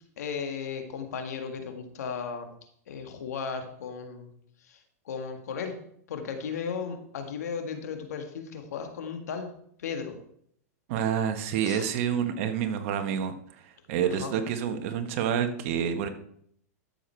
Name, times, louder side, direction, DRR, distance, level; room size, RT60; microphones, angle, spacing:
voice 1, 0.2-2.5 2.9-4.3 4.7-4.8 5.1-5.8 6.1-9.5 9.8-10.2 11.6-11.9 14.1-14.3, left 6 dB, 80° left, 5 dB, 1.9 m, -35 dB
voice 2, 10.9-16.1, right 8 dB, 55° right, 8 dB, 1.4 m, -28 dB
13.0 x 7.0 x 4.5 m, 0.68 s
hypercardioid pair, 130°, 9 cm